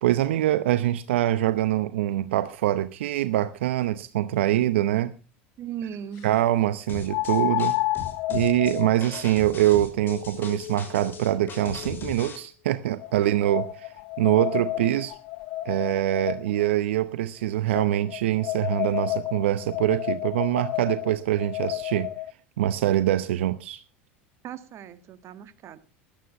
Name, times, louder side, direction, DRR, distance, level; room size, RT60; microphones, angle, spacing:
voice 1, 0.0-5.1 6.2-7.7 8.3-13.9 14.2-15.1 15.6-22.1 22.6-23.8, right 13 dB, 80° right, 0.8 m, -24 dB
sound 1, 4.5-4.6 7.1-12.2 13.0-16.7 17.7-22.3, left 17 dB, 60° left, 1.0 m, -31 dB
voice 2, 5.6-6.3 24.4-25.8, right 9 dB, 45° right, 1.6 m, -37 dB
sound 2, 6.9-12.4, left 5 dB, 35° left, 5.4 m, -39 dB
13.5 x 11.5 x 5.6 m
hypercardioid pair, 85°, 6 cm